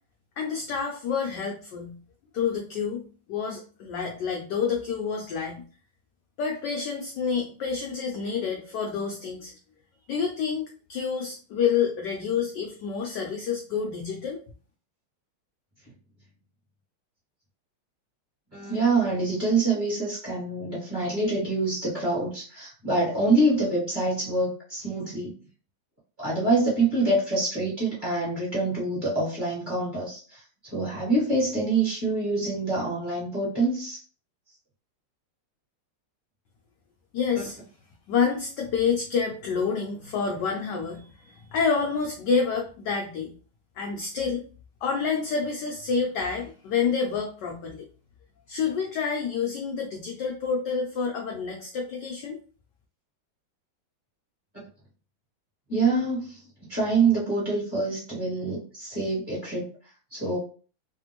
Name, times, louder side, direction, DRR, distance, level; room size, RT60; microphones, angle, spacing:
voice 1, 0.4-2.0 2.3-3.0 3.3-5.6 6.4-9.5 10.1-14.4 37.1-37.6 38.1-43.3 43.8-44.4 44.8-47.9 48.5-52.4, left 6 dB, 75° left, 1 dB, 1.0 m, -28 dB
voice 2, 18.5-25.4 26.2-34.0 55.7-56.4 56.7-59.7 60.1-60.4, right 2 dB, 25° right, -8 dB, 1.3 m, -26 dB
3.3 x 2.4 x 3.0 m, 0.40 s
omnidirectional pair, 2.3 m